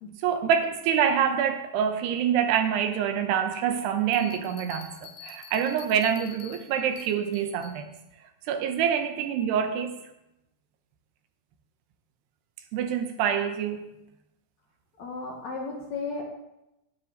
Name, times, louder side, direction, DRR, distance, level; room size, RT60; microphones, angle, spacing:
voice 1, 0.2-8.0 8.5-10.0 12.7-14.0, right 8 dB, 80° right, 7 dB, 3.1 m, -26 dB
Bell, 4.1-7.8, left 6 dB, 75° left, 3.8 m, -47 dB
voice 2, 15.0-16.2, left 4 dB, 60° left, 0 dB, 2.1 m, -34 dB
9.9 x 6.7 x 8.6 m, 0.90 s
omnidirectional pair, 4.7 m